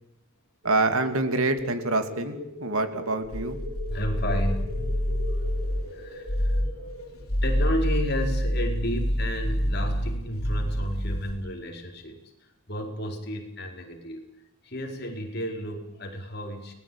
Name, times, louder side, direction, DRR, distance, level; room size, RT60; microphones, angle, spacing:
sound 1, 0.6-7.1, left 2 dB, 60° right, 6.8 m, -41 dB
voice 1, 0.6-3.6, right 2 dB, 85° right, 8 dB, 2.8 m, -26 dB
sound 2, 3.2-5.9 6.2-6.8 7.2-11.4, equal, 80° left, 3.8 m, -27 dB
voice 2, 3.9-5.0 5.3-5.5 5.9-14.2 14.6-16.7, equal, 50° left, 2 dB, 4.7 m, -33 dB
30.0 x 20.0 x 8.9 m, 0.85 s
head